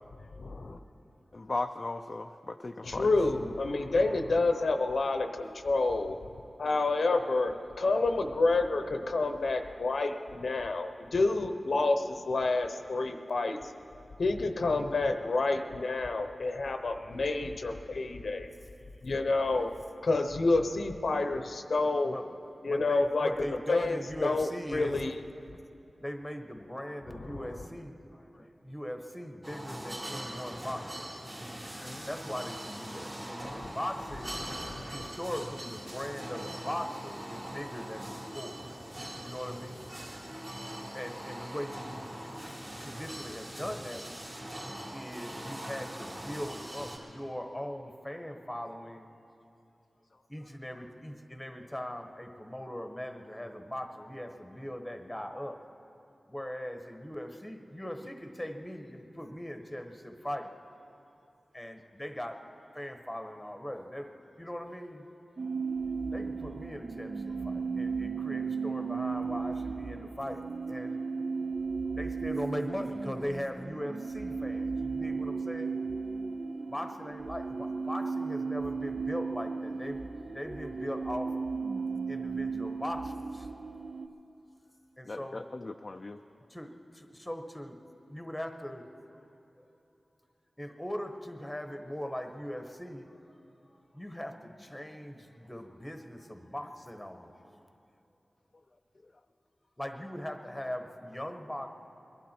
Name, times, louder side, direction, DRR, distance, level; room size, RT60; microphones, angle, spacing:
voice 1, 0.4-0.8 2.8-6.2 6.6-13.7 14.2-18.5 19.0-19.7 20.0-22.1 22.6-25.1 27.3-27.7 33.4-33.7 34.4-35.1, left 3 dB, 75° left, 6 dB, 0.8 m, -29 dB
voice 2, 1.3-3.1 31.8-32.1 85.1-86.2, left 2 dB, 45° left, 5 dB, 0.4 m, -37 dB
voice 3, 22.0-22.4 22.6-25.0 26.0-31.6 32.0-34.4 34.9-38.6 39.2-39.9 40.6-42.5 42.8-44.0 44.7-49.1 50.3-55.6 56.3-60.9 61.5-62.4 62.7-64.1 64.4-65.3 66.1-70.4 70.7-71.0 71.9-75.7 76.7-81.3 82.1-83.5 85.0-85.4 86.5-87.8 88.1-89.3 89.6-89.7 90.6-93.2 93.9-97.7 99.8-101.7, equal, 10° left, 5 dB, 1.1 m, -40 dB
sound 1, 29.4-47.0, right 1 dB, 30° right, 2.8 m, -42 dB
sound 2, 65.4-84.1, right 4 dB, 50° right, 0.5 m, -35 dB
22.0 x 12.0 x 4.4 m, 2.8 s
wide cardioid pair, 95°, 0 cm